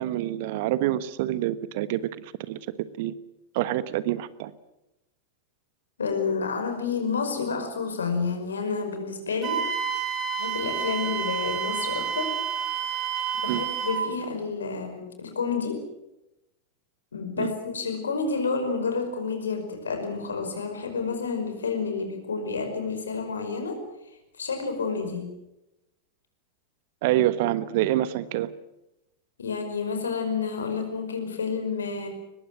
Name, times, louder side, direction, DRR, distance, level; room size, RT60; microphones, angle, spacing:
voice 1, 0.0-2.6 3.0-3.1 3.5-4.5 13.5-13.6 17.4-17.5 27.0-28.5, right 14 dB, 50° right, 16 dB, 1.2 m, -26 dB
voice 2, 6.0-9.7 10.0-12.4 13.3-15.8 17.1-23.8 24.4-25.3 29.4-32.1, left 5 dB, 70° left, 6 dB, 5.3 m, -30 dB
Wind instrument woodwind instrument, 9.4-14.1, right 7 dB, 30° right, 4.0 m, -29 dB
23.5 x 20.5 x 7.6 m, 0.90 s
figure-of-eight pair, 90°, 0 cm